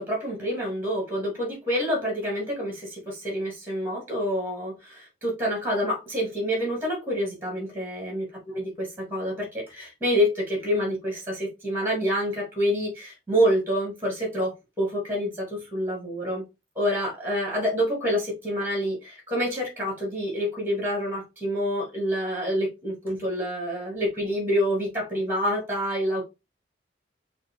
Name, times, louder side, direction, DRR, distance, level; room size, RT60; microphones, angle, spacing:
voice 1, 0.0-16.4 16.8-26.2, equal, 10° right, 0 dB, 1.9 m, -27 dB
5.5 x 2.2 x 3.6 m, 0.24 s
head